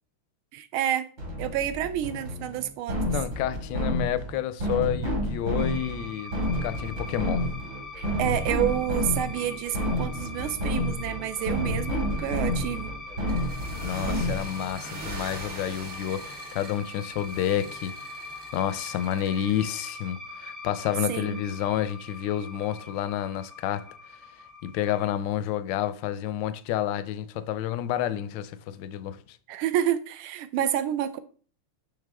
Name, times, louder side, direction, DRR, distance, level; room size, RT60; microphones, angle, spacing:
voice 1, 0.5-1.1 1.4-3.1 7.9-12.9 21.1-21.4 29.5-31.2, right 11 dB, 80° right, 1.4 m, -29 dB
sound 1, 1.2-14.7, equal, 60° right, 3.0 m, -30 dB
voice 2, 3.1-6.3 6.6-7.4 13.8-17.9 18.5-23.9 24.6-29.2, left 11 dB, 75° left, 1.1 m, -29 dB
sound 2, 5.6-25.2, left 2 dB, 15° right, 0.6 m, -42 dB
sound 3, 13.3-19.6, right 2 dB, 40° right, 1.0 m, -42 dB
10.5 x 3.6 x 3.4 m
omnidirectional pair, 2.4 m